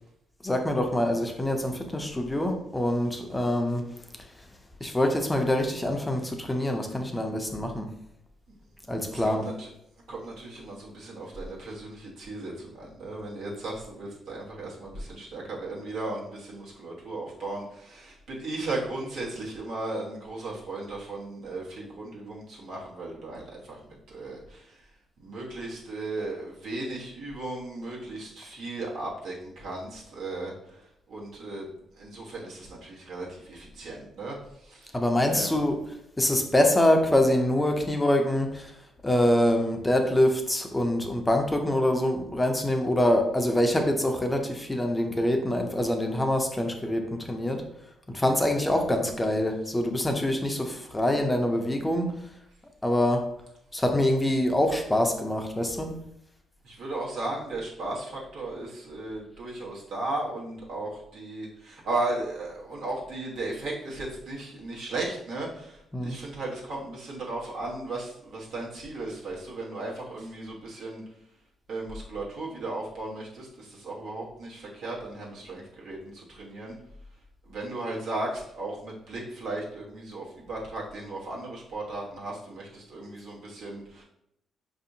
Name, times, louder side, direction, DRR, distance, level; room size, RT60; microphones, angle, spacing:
voice 1, 0.4-3.8 4.8-7.9 8.9-9.5 34.9-35.8 36.2-38.8 39.0-47.7 48.1-52.1 52.8-53.3 53.7-55.9 65.9-66.2, left 1 dB, 15° left, 4 dB, 0.5 m, -25 dB
voice 2, 9.1-9.7 10.1-24.9 25.2-31.7 32.0-35.0 35.3-35.6 56.6-71.0 71.7-76.8 77.4-84.0, right 2 dB, 75° right, -4 dB, 1.1 m, -36 dB
4.8 x 2.7 x 2.7 m, 0.78 s
cardioid pair, 90°, 0 cm